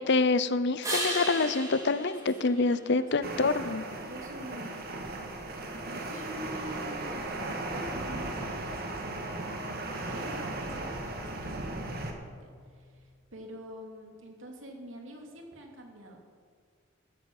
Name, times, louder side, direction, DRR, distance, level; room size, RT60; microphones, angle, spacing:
voice 1, 0.0-3.8, left 3 dB, 60° left, 14 dB, 0.6 m, -26 dB
sound 1, 0.8-3.4 9.1-13.1, right 1 dB, 15° right, 3.4 m, -39 dB
voice 2, 2.3-3.5 4.0-5.0 5.8-7.3 7.9-12.3 12.7-16.2, equal, 75° right, 1 dB, 2.7 m, -46 dB
sound 2, 3.2-12.1, right 2 dB, 50° right, 1.7 m, -36 dB
14.5 x 13.5 x 5.5 m, 2.1 s
head